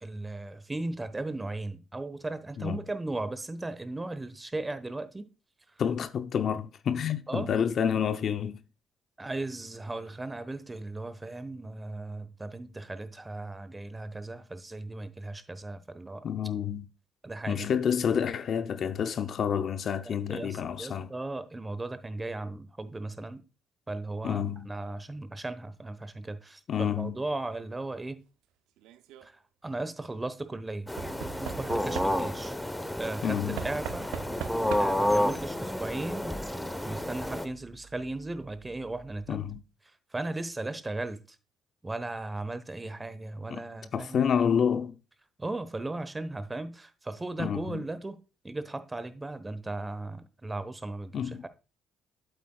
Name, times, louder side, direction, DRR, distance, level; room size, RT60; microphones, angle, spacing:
voice 1, 0.0-5.3 7.3-7.5 9.2-16.2 17.2-17.7 20.1-23.4 23.9-28.2 29.2-30.9 31.4-32.6 33.0-34.1 34.8-36.4 36.8-39.4 40.1-41.2 41.8-44.3 45.4-48.2 48.4-51.5, right 2 dB, 20° right, 1.0 m, -36 dB
voice 2, 5.8-8.6 16.2-16.9 17.5-21.1 24.2-24.7 26.7-27.2 33.2-33.6 39.3-39.6 43.5-43.6 43.9-44.9 47.4-47.8 51.1-51.5, left 8 dB, 60° left, 0.6 m, -29 dB
Knock / Wood, 28.8-29.3 31.0-32.5 33.6-35.1 36.2-36.3 36.5-36.6, right 11 dB, 80° right, 0.4 m, -40 dB
sound 1, 30.9-37.5, left 1 dB, 5° left, 0.9 m, -30 dB
sound 2, 33.6-39.5, right 6 dB, 55° right, 1.9 m, -55 dB
8.3 x 7.9 x 2.3 m
supercardioid pair, 60°, 0 cm